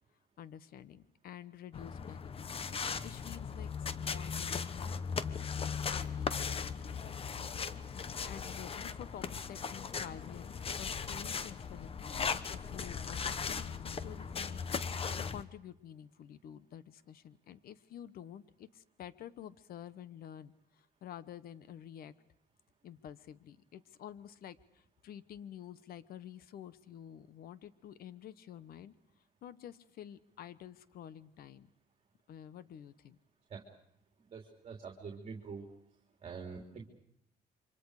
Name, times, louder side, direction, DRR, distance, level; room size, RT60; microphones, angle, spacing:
voice 1, 0.4-2.3 3.0-7.2 8.2-14.6 15.2-22.1 22.8-28.9 29.4-31.7 32.3-33.2, left 10 dB, 60° left, 15 dB, 1.2 m, -50 dB
sound 1, 1.7-15.4, left 6 dB, 35° left, 1.1 m, -38 dB
voice 2, 34.2-35.7 36.2-36.8, right 5 dB, 35° right, 1 dB, 3.4 m, -45 dB
28.5 x 25.0 x 5.0 m, 0.74 s
cardioid pair, 110°, 17 cm